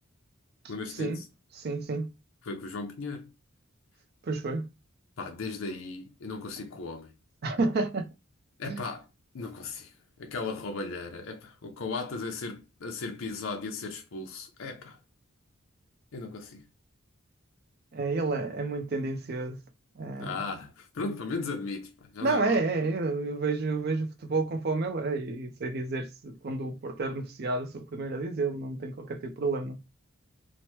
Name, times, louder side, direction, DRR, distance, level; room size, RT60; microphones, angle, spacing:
voice 1, 0.7-1.3 2.4-3.3 5.2-7.1 8.6-9.1 9.3-15.0 16.1-16.6 20.2-22.6, left 3 dB, 70° left, 0.5 m, -37 dB
voice 2, 1.6-2.1 4.2-4.7 7.4-8.1 8.6-8.8 17.9-19.6 20.0-20.5 22.2-29.8, right 3 dB, 50° right, 0.5 m, -30 dB
2.9 x 2.1 x 3.1 m
head